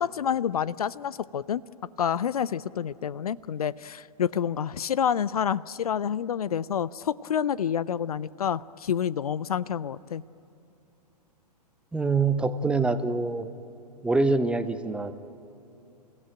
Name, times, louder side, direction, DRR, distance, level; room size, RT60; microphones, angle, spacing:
voice 1, 0.0-1.6 2.0-10.2, left 8 dB, 60° left, 20 dB, 0.5 m, -28 dB
voice 2, 11.9-13.5 14.0-15.1, right 3 dB, 5° right, 11 dB, 0.7 m, -25 dB
28.5 x 16.0 x 9.0 m, 2.7 s
figure-of-eight pair, 110°, 21 cm